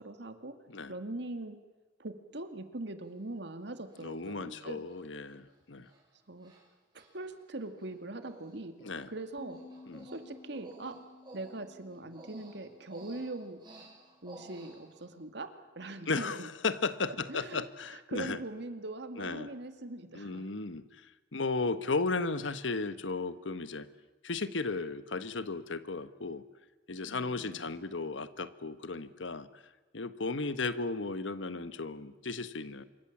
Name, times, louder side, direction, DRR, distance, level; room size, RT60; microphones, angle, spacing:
voice 1, 0.0-0.6 0.9-1.6 2.0-4.9 6.3-6.5 6.9-8.7 9.1-9.6 10.0-11.0 11.3-13.6 14.2-16.5 17.3-17.7 17.9-20.5 27.1-27.6, right 2 dB, 65° right, 8 dB, 2.1 m, -41 dB
Human voice, 3.0-3.1 3.9-4.3 4.9-5.0 5.3-5.5 5.8-6.0 6.4-6.6 6.9-7.9 8.2-8.5 8.8-15.1, right 2 dB, 25° right, 7.4 m, -54 dB
voice 2, 4.0-5.9 8.8-9.1 9.9-10.1 16.1-18.4 19.2-19.5 20.1-21.1 21.3-23.9 24.2-26.4 26.9-29.5 29.9-32.8, left 3 dB, 90° left, 13 dB, 1.3 m, -35 dB
sound 1, 9.4-14.5, left 2 dB, 25° left, 1.4 m, -55 dB
26.5 x 23.5 x 7.3 m, 1.2 s
head